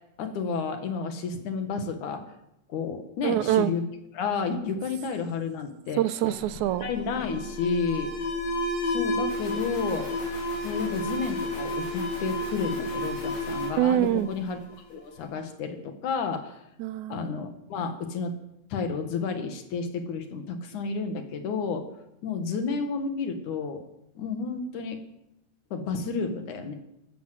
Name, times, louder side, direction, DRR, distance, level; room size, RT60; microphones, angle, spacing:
voice 1, 0.2-2.2 2.7-3.8 4.1-6.0 6.8-8.1 8.8-10.1 10.6-14.6 14.9-16.6 17.1-18.3 18.7-21.9 22.2-23.8 24.2-25.0 25.7-26.7, left 5 dB, 85° left, 6 dB, 3.2 m, -31 dB
voice 2, 3.2-3.7 6.0-6.9 13.8-14.3 16.8-17.4, right 12 dB, 90° right, 14 dB, 2.2 m, -25 dB
Alarm, 6.3-14.9, left 1 dB, 65° left, 5.8 m, -31 dB
14.0 x 12.5 x 7.9 m, 0.83 s
omnidirectional pair, 3.4 m